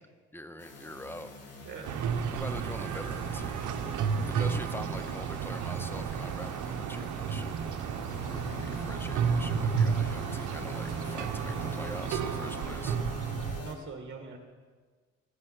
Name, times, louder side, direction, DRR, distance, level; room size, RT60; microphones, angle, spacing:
voice 1, 0.3-1.3 2.3-3.7 4.2-7.6 8.3-13.0, left 1 dB, 5° left, 12 dB, 0.7 m, -44 dB
sound 1, 0.6-13.7, left 3 dB, 55° left, 1.9 m, -44 dB
sound 2, 1.8-13.6, right 7 dB, 75° right, 0.9 m, -32 dB
voice 2, 12.4-12.9 13.6-14.4, right 5 dB, 40° right, 4 dB, 1.5 m, -44 dB
15.0 x 7.5 x 6.3 m, 1.5 s
cardioid pair, 90°, 30 cm